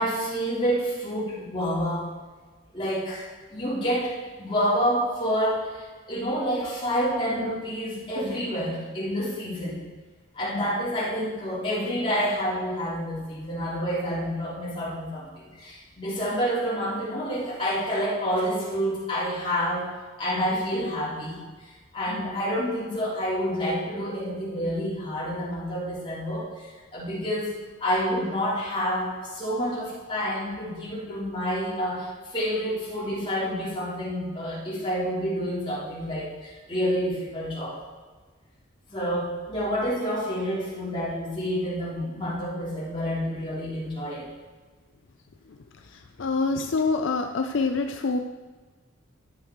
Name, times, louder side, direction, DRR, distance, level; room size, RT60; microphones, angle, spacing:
voice 1, 0.0-2.1 2.7-4.1 4.4-9.8 10.3-19.9 20.2-21.4 21.9-27.5 27.8-37.8 38.9-44.3, equal, 25° left, -8 dB, 3.5 m, -28 dB
voice 2, 46.2-48.2, left 4 dB, 70° left, 6 dB, 0.5 m, -25 dB
12.5 x 6.5 x 4.5 m, 1.4 s
head